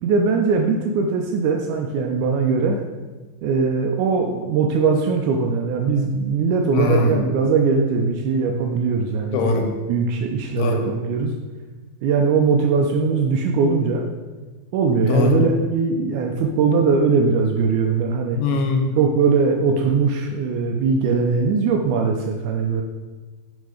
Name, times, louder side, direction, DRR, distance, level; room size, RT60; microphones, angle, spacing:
voice 1, 0.0-2.8 3.4-11.3 12.0-14.0 14.7-18.4 19.0-22.8, right 5 dB, 90° right, 2 dB, 1.7 m, -20 dB
voice 2, 6.7-7.2 9.3-9.7 10.6-10.9 15.1-15.4 18.4-18.9, left 3 dB, 75° left, 4 dB, 2.6 m, -20 dB
12.0 x 4.5 x 4.9 m, 1.3 s
omnidirectional pair, 4.4 m